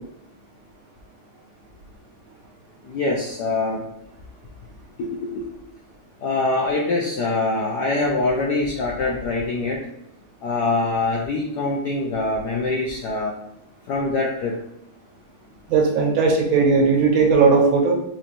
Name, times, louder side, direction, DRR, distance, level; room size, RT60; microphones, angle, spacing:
voice 1, 2.9-3.8 5.0-5.4 6.2-9.8 10.4-13.3 13.9-14.6, left 3 dB, 75° left, -3 dB, 0.9 m, -24 dB
voice 2, 15.7-17.9, right 4 dB, 75° right, 1 dB, 1.5 m, -17 dB
4.2 x 3.1 x 2.5 m, 0.77 s
omnidirectional pair, 2.3 m